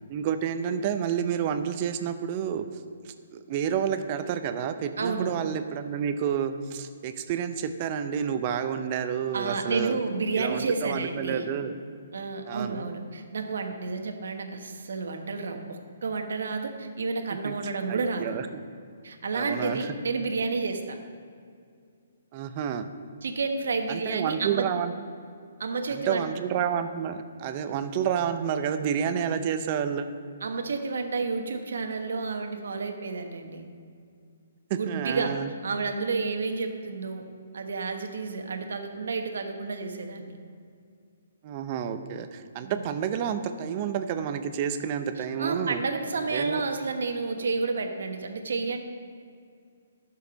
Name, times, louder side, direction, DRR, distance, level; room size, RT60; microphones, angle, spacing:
voice 1, 0.1-2.7 3.0-10.0 10.4-11.7 12.5-12.8 17.4-17.6 17.9-18.5 19.3-19.9 22.3-22.9 23.9-24.9 25.9-30.1 34.7-35.5 41.4-45.8 46.3-46.6, right 8 dB, 35° right, 9 dB, 0.6 m, -29 dB
voice 2, 5.0-5.3 9.3-11.5 12.1-18.4 19.0-21.0 23.2-24.7 25.6-26.3 30.4-33.7 34.7-35.3 35.6-37.2 37.5-40.4 42.6-42.8 45.2-48.8, right 4 dB, 75° right, 5 dB, 1.1 m, -30 dB
11.5 x 6.5 x 5.2 m, 2.3 s
hypercardioid pair, 150°, 0 cm